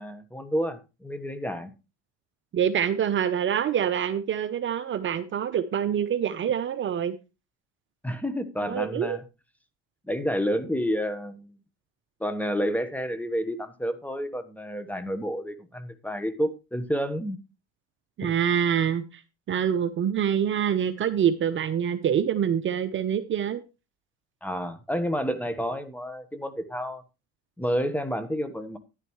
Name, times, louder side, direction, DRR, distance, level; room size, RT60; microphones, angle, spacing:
voice 1, 0.0-1.7 8.0-9.2 10.1-11.5 12.2-17.4 18.2-18.3 24.4-27.0 27.6-28.8, equal, 5° left, 11 dB, 1.2 m, -30 dB
voice 2, 2.5-7.2 8.6-9.2 18.2-19.2 19.5-23.6, right 8 dB, 40° right, 10 dB, 0.8 m, -25 dB
11.0 x 10.5 x 3.2 m, 0.28 s
supercardioid pair, 95°, 31 cm